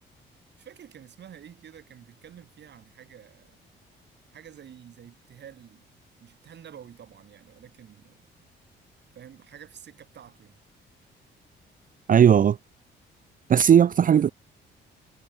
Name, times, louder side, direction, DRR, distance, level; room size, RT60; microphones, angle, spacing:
voice 1, 0.6-3.6 4.3-5.8 6.2-8.5 9.1-10.6 14.1-14.2, right 9 dB, 60° right, 4.3 m, -49 dB
voice 2, 12.1-12.6 13.5-14.3, right 8 dB, 45° right, 0.6 m, -17 dB
cardioid pair, 90°, 20 cm